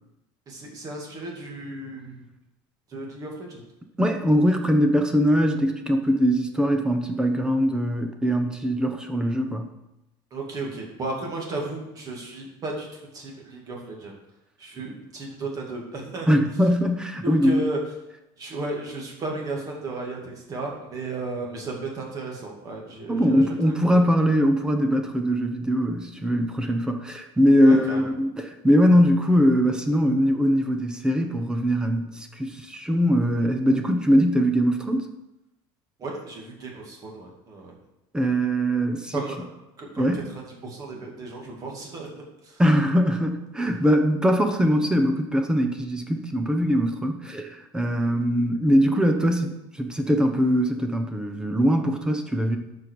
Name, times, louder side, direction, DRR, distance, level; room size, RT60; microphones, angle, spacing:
voice 1, 0.5-2.3 2.9-3.6 10.3-14.2 14.6-16.3 17.2-17.8 18.4-24.0 27.6-28.0 36.0-37.7 39.1-39.5 39.8-42.6, right 2 dB, 30° right, 0 dB, 2.4 m, -34 dB
voice 2, 4.0-9.7 16.3-17.7 23.1-35.1 38.1-39.2 40.0-40.3 42.6-52.6, equal, 5° right, 5 dB, 0.9 m, -22 dB
13.0 x 5.2 x 4.7 m, 0.92 s
cardioid pair, 155°, 11 cm